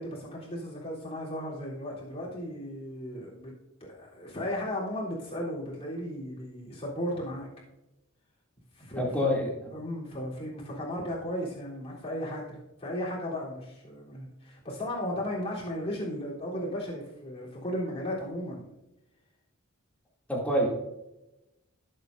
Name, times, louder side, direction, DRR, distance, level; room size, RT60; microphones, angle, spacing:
voice 1, 0.0-3.5 3.8-7.5 8.8-9.3 9.7-18.8, equal, 30° left, -6 dB, 3.6 m, -35 dB
voice 2, 9.0-9.7 20.3-20.7, equal, 5° left, -4 dB, 2.7 m, -27 dB
17.5 x 7.9 x 2.7 m, 0.95 s
head